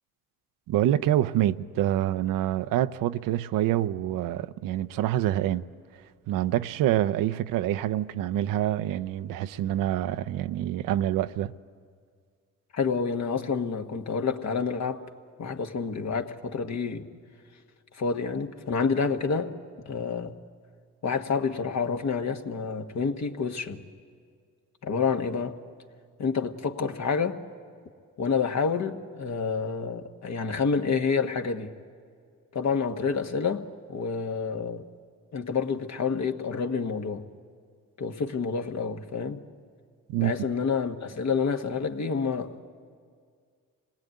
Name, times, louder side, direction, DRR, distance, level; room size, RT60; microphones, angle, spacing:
voice 1, 0.7-5.6 6.3-11.5 40.1-40.3, right 13 dB, 90° right, 0.6 m, -26 dB
voice 2, 12.7-15.0 15.4-17.1 17.9-19.6 19.8-20.4 21.0-23.8 24.8-25.6 26.2-27.4 28.2-31.7 32.5-34.9 35.3-37.3 38.0-39.4 40.2-42.6, left 5 dB, 55° left, 1.5 m, -28 dB
25.5 x 19.5 x 9.3 m
cardioid pair, 70°, 32 cm